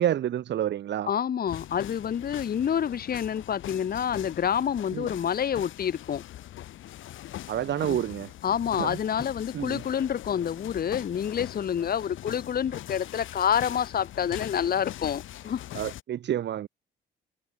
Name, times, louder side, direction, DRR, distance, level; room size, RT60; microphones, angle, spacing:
voice 1, 0.0-1.1 4.9-5.1 7.5-8.3 8.8-9.0 9.5-9.8 15.7-16.7, right 11 dB, 60° right, 1.1 m, -28 dB
voice 2, 1.0-6.2 7.9-8.0 8.4-15.6, left 8 dB, 50° left, 1.3 m, -28 dB
sound 1, 1.5-16.0, left 13 dB, 80° left, 2.3 m, -42 dB
cardioid pair, 90°, 20 cm